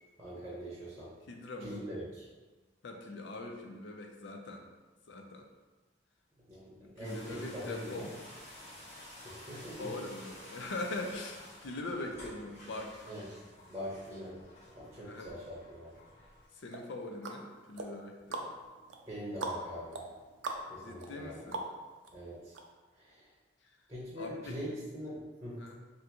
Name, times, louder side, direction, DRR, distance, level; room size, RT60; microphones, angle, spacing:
voice 1, 0.2-1.1 1.6-2.2 6.5-8.1 9.2-10.0 13.0-13.3 13.7-14.4 14.7-15.9 19.1-20.1 20.7-21.5 22.1-22.5 22.9-23.3 23.9-25.6, equal, 15° right, -8 dB, 0.7 m, -43 dB
voice 2, 1.3-1.9 2.8-4.7 5.1-5.5 6.8-8.1 9.8-13.0 15.0-15.3 16.6-18.5 20.8-21.6 23.6-23.8 24.2-24.7 25.6-25.8, left 2 dB, 65° left, 3 dB, 0.4 m, -42 dB
sound 1, 7.0-16.5, left 1 dB, 35° left, 1.5 m, -52 dB
sound 2, 16.7-22.1 22.5-22.6, right 3 dB, 75° right, 0.4 m, -42 dB
3.5 x 2.5 x 2.8 m, 1.2 s
head